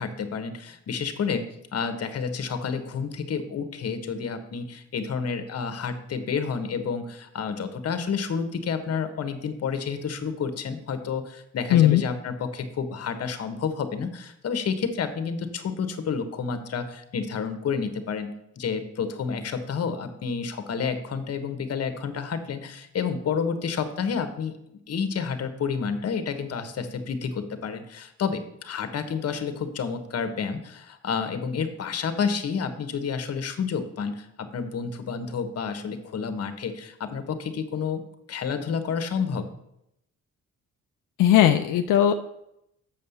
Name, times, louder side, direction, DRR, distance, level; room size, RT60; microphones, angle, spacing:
voice 1, 0.0-1.5 1.7-24.5 24.9-38.0 38.3-39.5, left 6 dB, 50° left, 9 dB, 1.2 m, -30 dB
voice 2, 11.7-12.0 41.2-42.1, left 11 dB, 85° left, 7 dB, 0.6 m, -18 dB
7.4 x 5.4 x 7.0 m, 0.80 s
cardioid pair, 100°, 31 cm